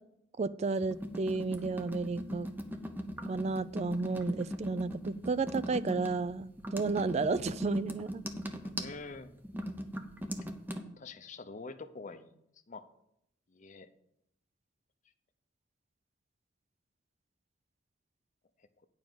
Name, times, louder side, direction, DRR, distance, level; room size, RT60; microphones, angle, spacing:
voice 1, 0.4-2.5 3.3-8.2, right 4 dB, 35° right, 17 dB, 0.3 m, -32 dB
sound 1, 0.9-10.8, equal, 10° right, 0.7 m, -39 dB
voice 2, 8.8-9.4 11.0-12.4 12.7-12.9 13.5-13.9, left 3 dB, 40° left, 9 dB, 0.6 m, -45 dB
9.2 x 5.1 x 7.7 m, 0.79 s
head